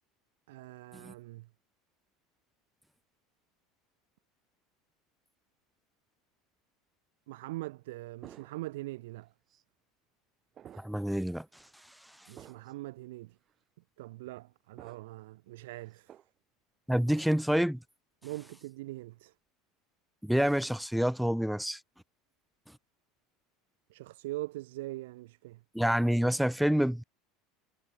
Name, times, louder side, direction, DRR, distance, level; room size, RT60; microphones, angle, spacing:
voice 1, 0.5-1.5 7.3-9.3 12.3-13.4 14.0-16.1 18.2-19.3 23.9-25.6, right 18 dB, 90° right, 0.6 m, -42 dB
sound 1, 8.2-8.9 9.5-9.6 10.5-11.1 11.5-11.7 12.3-12.8 13.5-13.6 14.8-15.2 15.6-16.3 17.1-17.5, right 10 dB, 25° right, 3.2 m, -53 dB
voice 2, 10.8-11.5 16.9-17.8 20.2-21.8 25.7-27.0, equal, ahead, 0.5 m, -27 dB
cardioid pair, 170°, 0 cm